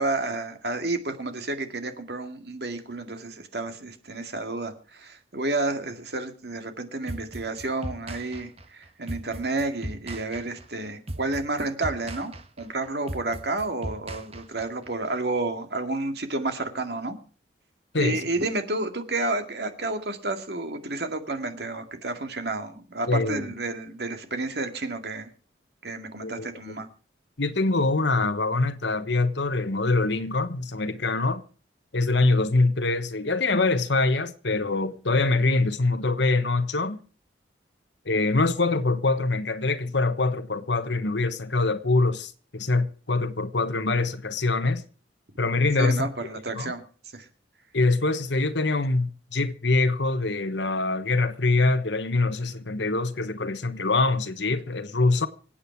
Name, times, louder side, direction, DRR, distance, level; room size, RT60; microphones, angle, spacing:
voice 1, 0.0-17.2 18.0-25.3 25.8-26.9 45.8-46.8 47.1-47.3, right 2 dB, 60° right, 2.2 m, -30 dB
sound 1, 7.1-14.9, right 1 dB, 35° right, 1.4 m, -38 dB
voice 2, 23.1-23.4 26.2-26.8 27.4-31.4 31.9-37.0 38.1-44.8 45.4-46.1 46.5-46.7 47.7-55.3, left 3 dB, 75° left, 1.2 m, -24 dB
26.0 x 8.8 x 4.6 m
head